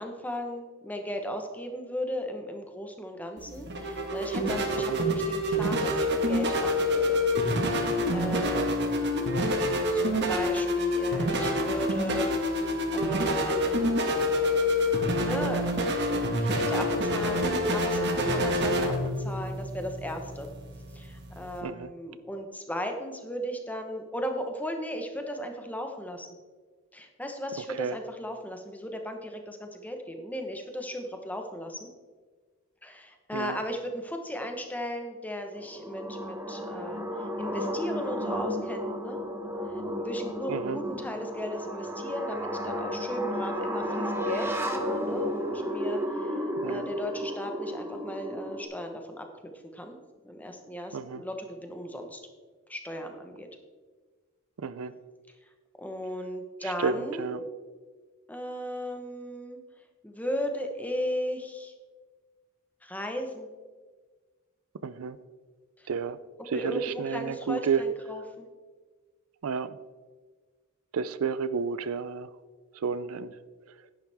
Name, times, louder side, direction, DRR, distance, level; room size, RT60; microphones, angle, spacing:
voice 1, 0.0-7.2 7.7-9.1 9.9-12.3 12.6-18.9 19.2-20.5 20.9-26.3 26.9-31.9 32.8-39.2 40.0-46.4 46.6-50.0 50.2-52.2 52.7-53.5 55.8-57.5 58.3-59.6 60.0-61.7 62.8-63.5 65.8-65.9 66.5-68.5, equal, 10° left, 4 dB, 1.1 m, -36 dB
sound 1, 3.4-21.6, left 1 dB, 55° right, 1.5 m, -27 dB
sound 2, 35.6-48.7, equal, 10° right, 0.9 m, -33 dB
voice 2, 40.5-40.8 46.6-46.9 50.9-51.2 54.6-54.9 56.6-57.4 64.8-65.2 65.9-66.2 66.5-67.8 69.4-69.8 70.9-72.3 72.7-73.4, right 5 dB, 80° right, 15 dB, 0.5 m, -31 dB
10.5 x 10.5 x 3.5 m, 1.4 s
head